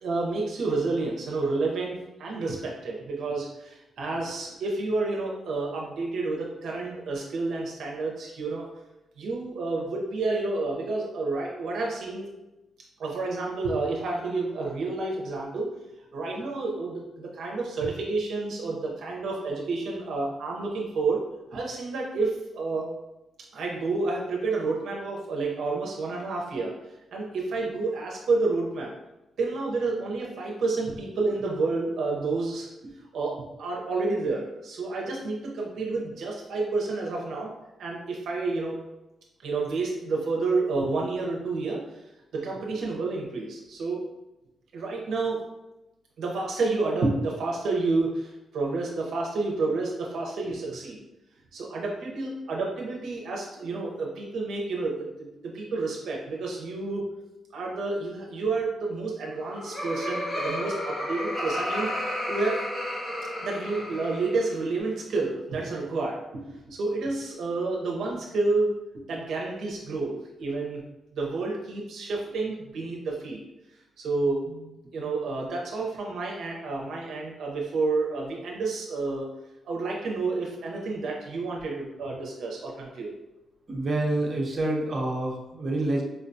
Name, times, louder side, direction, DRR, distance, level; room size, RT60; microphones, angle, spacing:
voice 1, 0.0-8.7 9.2-12.3 13.0-15.7 16.1-21.2 21.5-22.9 23.5-26.7 27.1-28.9 29.4-32.7 33.1-37.5 37.8-38.8 39.4-41.8 42.3-44.0 44.7-45.4 46.2-51.0 51.5-57.1 57.5-61.9 62.3-62.6 63.4-66.2 66.7-68.7 69.1-70.8 71.1-73.4 74.0-79.3 79.7-83.1, right 3 dB, 75° right, -2 dB, 0.6 m, -29 dB
Laughter, 59.2-64.5, left 1 dB, 40° left, 1.3 m, -32 dB
voice 2, 83.7-86.0, right 1 dB, 40° right, -1 dB, 0.7 m, -27 dB
4.8 x 2.2 x 2.6 m, 0.97 s
cardioid pair, 95°, 0 cm